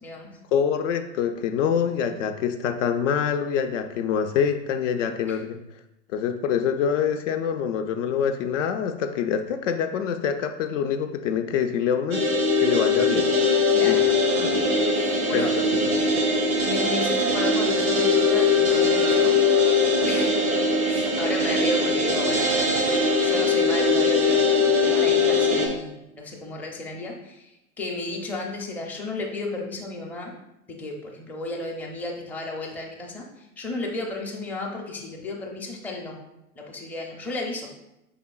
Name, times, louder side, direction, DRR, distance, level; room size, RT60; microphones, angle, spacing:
voice 1, 0.0-0.4 5.3-5.4 13.7-14.1 14.9-15.6 16.6-19.4 20.1-20.5 20.8-30.3 30.7-36.2 36.6-37.7, left 2 dB, 5° left, -1 dB, 0.5 m, -33 dB
voice 2, 0.5-5.6 6.1-12.2 12.6-13.3 13.8-14.0 14.4-14.5 15.3-15.6, left 7 dB, 65° left, 7 dB, 0.5 m, -25 dB
sound 1, 12.1-25.7, left 3 dB, 90° right, 0.8 m, -21 dB
4.7 x 3.4 x 2.3 m, 0.89 s
figure-of-eight pair, 85°, 40 cm